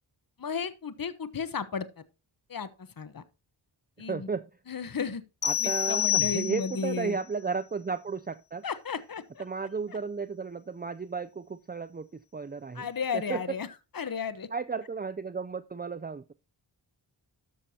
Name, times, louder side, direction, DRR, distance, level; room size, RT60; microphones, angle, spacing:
voice 1, 0.4-1.9 2.5-3.2 4.0-4.3 4.7-5.2 5.6-7.2 8.6-9.4 9.9-10.0 12.7-13.7 13.9-14.5, left 6 dB, 45° left, 1.1 m, -34 dB
voice 2, 4.1-4.5 5.4-8.6 9.4-12.1 12.3-12.9 13.3-13.4 14.5-16.2, right 5 dB, 20° right, 0.5 m, -33 dB
sound 1, 5.4-6.9, left 11 dB, 85° left, 1.0 m, -28 dB
13.0 x 6.8 x 2.9 m
cardioid pair, 40°, 48 cm